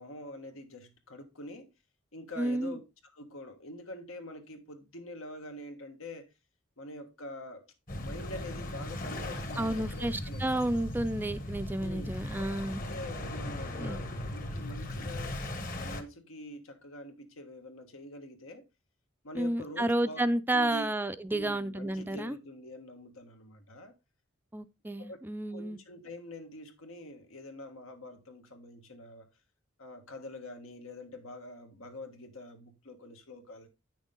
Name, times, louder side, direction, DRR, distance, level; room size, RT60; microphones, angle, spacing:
voice 1, 0.0-1.7 2.1-2.8 3.1-6.3 6.8-7.7 7.9-10.8 11.8-12.1 12.9-15.4 15.7-18.7 19.2-20.2 20.5-20.9 21.3-23.9 25.0-25.2 25.5-29.3 29.8-33.7, left 1 dB, 90° left, 1.6 m, -45 dB
voice 2, 2.4-2.8 9.6-12.8 13.8-14.0 19.3-22.4 24.5-25.8, right 1 dB, 10° right, 0.4 m, -31 dB
sound 1, 7.9-16.0, left 1 dB, 45° left, 1.3 m, -38 dB
8.9 x 6.3 x 3.7 m
head